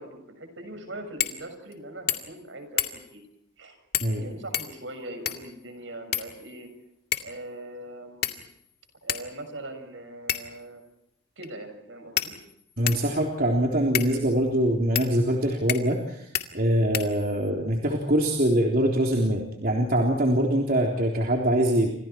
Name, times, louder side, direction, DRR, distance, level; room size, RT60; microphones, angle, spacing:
voice 1, 0.0-3.2 3.6-3.8 4.2-6.7 7.2-8.4 9.0-10.8 11.4-12.4, right 1 dB, 70° right, 7 dB, 6.6 m, -41 dB
sound 1, 1.2-1.4 1.7-1.8 2.1-2.4 2.8-3.2 3.9-4.2 4.5-5.5 6.1-6.7 7.1-7.4 8.2-8.6 9.1-9.2 10.3-10.6 11.4-11.5 12.2-13.1 13.9-14.1 14.9-15.1 15.7-16.0 16.3-16.5 16.9-17.5, left 11 dB, 55° left, 2.2 m, -30 dB
voice 2, 12.8-21.9, right 1 dB, 50° right, 0 dB, 3.6 m, -23 dB
29.5 x 26.5 x 4.6 m, 0.80 s
head